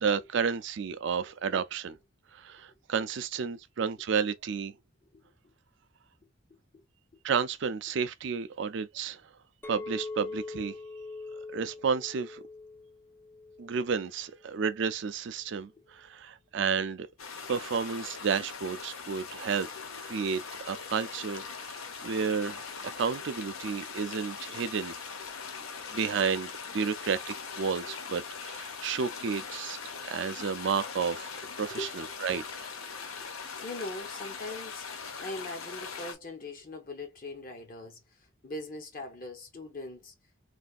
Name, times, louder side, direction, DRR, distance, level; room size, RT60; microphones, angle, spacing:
voice 1, 0.0-1.9 2.3-4.7 7.2-9.2 9.7-10.8 11.5-12.4 13.6-17.1 17.5-19.7 20.1-25.0 25.9-29.8 30.0-31.8 32.2-32.4, right 6 dB, 60° right, 0.4 m, -31 dB
voice 2, 6.5-6.8 31.7-32.4 32.9-34.9 35.2-40.1, left 2 dB, 45° left, 0.7 m, -42 dB
Chink clink, 9.6-13.9 14.4-14.8, left 3 dB, 10° left, 0.4 m, -42 dB
sound 1, 17.2-36.1, left 5 dB, 90° left, 0.8 m, -41 dB
3.3 x 2.5 x 2.4 m
head